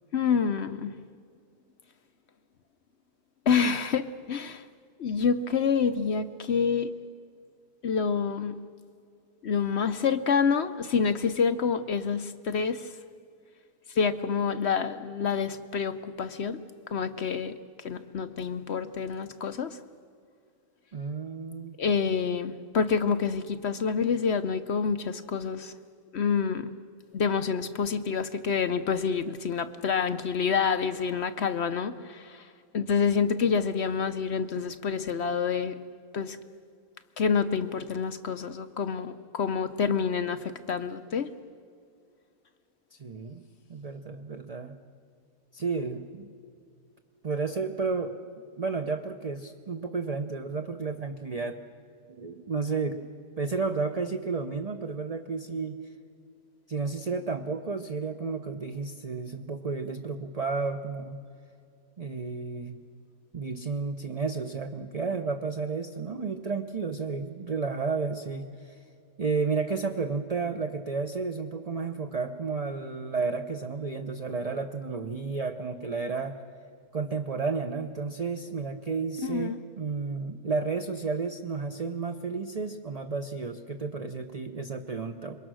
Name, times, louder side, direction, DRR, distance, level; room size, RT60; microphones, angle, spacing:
voice 1, 0.1-0.9 3.5-4.6 5.0-6.9 7.8-8.5 9.4-12.9 14.0-16.6 16.9-17.6 17.8-19.8 21.8-25.7 26.1-26.7 27.1-32.5 32.7-35.7 36.1-36.4 37.2-41.3 79.2-79.6, left 6 dB, 55° left, 12 dB, 0.9 m, -27 dB
voice 2, 20.9-21.8 42.9-43.4 43.7-44.7 45.5-46.3 47.2-48.2 48.6-51.6 52.2-52.9 53.4-55.8 56.7-61.2 62.0-62.8 63.3-68.8 69.2-76.4 76.9-85.4, right 4 dB, 30° right, 6 dB, 0.8 m, -32 dB
27.5 x 23.0 x 6.3 m, 2.4 s
omnidirectional pair, 1.6 m